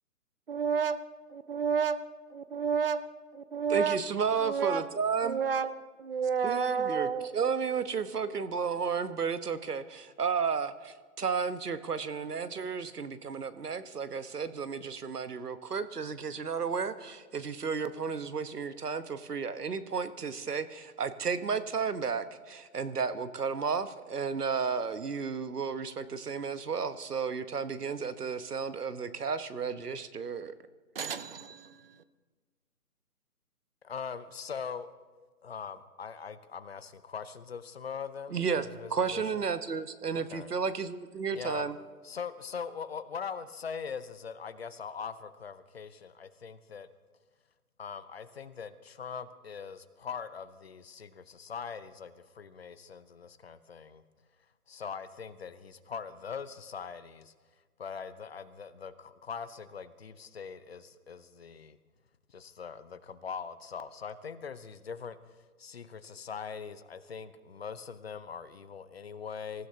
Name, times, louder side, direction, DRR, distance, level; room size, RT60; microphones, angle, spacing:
voice 1, 0.5-1.0 1.5-2.0 2.3-3.1 3.3-4.0 4.4-4.8 5.2-5.7 6.0-7.3 31.0-32.0, right 6 dB, 40° right, 14 dB, 0.6 m, -30 dB
voice 2, 3.7-5.4 6.4-30.6 38.3-41.8, right 5 dB, 85° right, 12 dB, 1.2 m, -33 dB
voice 3, 33.8-34.9 35.4-39.4 40.2-40.5 41.3-41.7 42.0-46.9 47.8-54.0 54.7-57.3 57.8-61.8 62.3-65.2 65.6-69.7, left 6 dB, 40° left, 13 dB, 0.8 m, -41 dB
25.5 x 15.5 x 2.8 m, 1.4 s
figure-of-eight pair, 155°, 46 cm